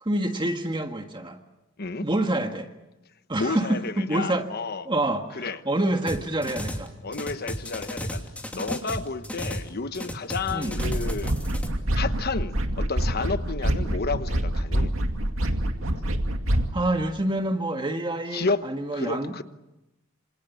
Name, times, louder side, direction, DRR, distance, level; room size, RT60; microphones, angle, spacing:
voice 1, 0.0-1.4 2.0-2.7 3.3-4.5 4.9-6.9 10.5-10.8 16.7-19.3, right 1 dB, 25° right, 1.7 m, -27 dB
voice 2, 3.4-4.9 5.3-5.6 7.0-11.3 11.9-14.9 18.3-18.6 18.9-19.4, left 4 dB, 50° left, 1.2 m, -31 dB
sound 1, 6.1-6.9 7.1-9.7 9.9-11.7, equal, 5° left, 2.9 m, -33 dB
sound 2, 10.7-16.7, right 1 dB, 85° right, 2.4 m, -26 dB
27.0 x 27.0 x 7.2 m
head